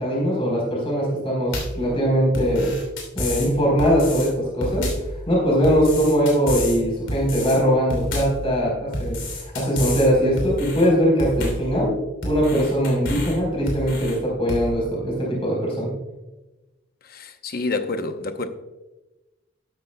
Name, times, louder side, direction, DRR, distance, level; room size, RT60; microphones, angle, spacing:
voice 1, 0.0-2.7 3.1-4.9 5.3-11.9 12.2-15.9, equal, 30° left, 4.0 m, -21 dB
sound 1, 1.5-1.8 2.3-3.5 3.8-4.3 4.6-5.1 5.6-6.8 7.1-7.6 7.9-8.4 8.9-10.1 10.4-10.9 11.2-11.7 12.2-13.3 13.7-14.1 14.5-14.7, left 1 dB, 80° left, 3.1 m, -29 dB
voice 2, 17.0-18.5, left 3 dB, 50° left, 0.8 m, -28 dB
13.0 x 12.0 x 2.3 m
head